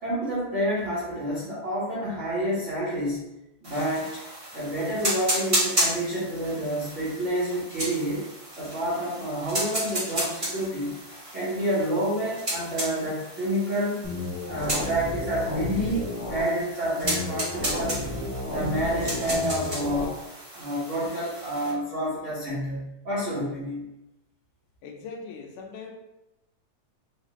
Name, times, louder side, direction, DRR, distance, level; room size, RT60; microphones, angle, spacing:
voice 1, 0.0-3.2 3.6-4.2 4.5-8.2 8.6-10.9 11.3-14.0 14.4-18.0 18.5-20.1 20.5-23.8, right 1 dB, 85° right, -10 dB, 0.6 m, -28 dB
sound 1, 3.6-21.7, right 1 dB, 35° right, 0.7 m, -33 dB
sound 2, 14.0-16.4 17.0-20.0, left 2 dB, 55° left, 0.8 m, -32 dB
voice 2, 24.8-25.9, left 4 dB, 85° left, 1 dB, 2.1 m, -40 dB
5.2 x 2.4 x 3.0 m, 0.93 s
omnidirectional pair, 3.5 m